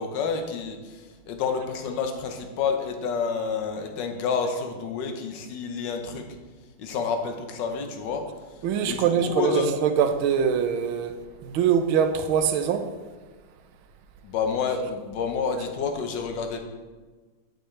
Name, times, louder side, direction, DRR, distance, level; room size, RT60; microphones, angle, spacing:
voice 1, 0.0-6.3 6.8-8.2 8.8-9.7 14.2-16.6, left 5 dB, 65° left, 1.5 m, -29 dB
voice 2, 8.6-11.2 11.4-12.9, right 8 dB, 80° right, 1.4 m, -23 dB
9.0 x 8.6 x 3.2 m
omnidirectional pair, 2.3 m